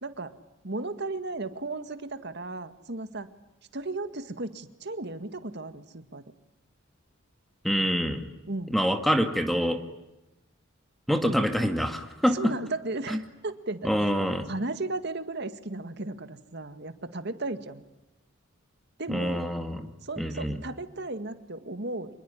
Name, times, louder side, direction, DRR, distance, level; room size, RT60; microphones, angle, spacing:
voice 1, 0.0-0.3 0.6-3.3 3.7-6.2 8.5-8.8 11.2-11.4 12.3-14.1 14.5-17.8 19.0-19.5 20.0-22.1, right 2 dB, 55° right, 10 dB, 1.9 m, -35 dB
voice 2, 7.6-8.2 8.7-9.8 11.1-12.4 13.1-13.2 13.8-14.4 19.1-19.8 20.2-20.6, equal, ahead, 6 dB, 2.0 m, -26 dB
26.5 x 21.5 x 9.8 m, 0.99 s
head